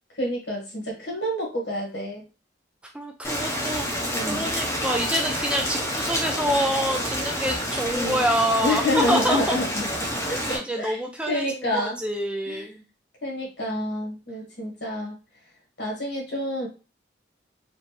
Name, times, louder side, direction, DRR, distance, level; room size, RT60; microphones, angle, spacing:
voice 1, 0.2-2.3 4.1-4.5 7.9-8.2 8.6-11.0 11.3-12.0 12.4-12.7 13.2-15.2 15.8-16.7, left 1 dB, 70° left, 0 dB, 1.6 m, -28 dB
voice 2, 2.9-9.6 10.3-12.8, right 1 dB, 5° right, 2 dB, 0.4 m, -27 dB
Rain, 3.2-10.6, equal, 15° left, 0.8 m, -28 dB
4.3 x 2.6 x 3.1 m, 0.31 s
head